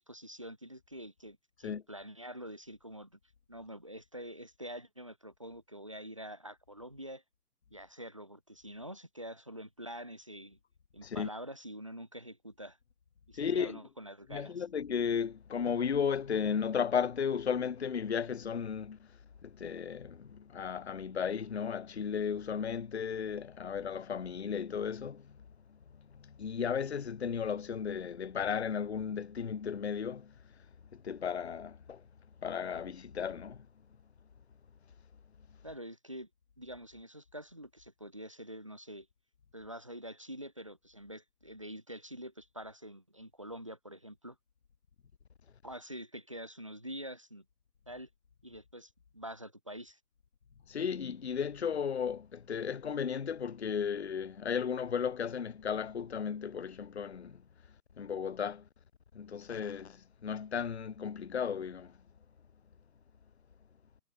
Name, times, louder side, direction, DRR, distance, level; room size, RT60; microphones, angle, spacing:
voice 1, 0.0-3.2 3.5-7.2 7.7-10.6 10.9-12.8 13.3-14.6 35.6-36.3 36.6-39.1 39.5-44.4 45.6-47.4 47.9-48.1 48.4-50.0, equal, 20° right, 0.6 m, -46 dB
voice 2, 13.4-13.8 14.3-19.1 19.4-25.4 26.2-30.3 30.9-32.0 32.4-33.7 50.7-57.4 58.0-58.7 59.1-61.9, left 7 dB, 40° left, 0.7 m, -35 dB
hypercardioid pair, 165°, 50 cm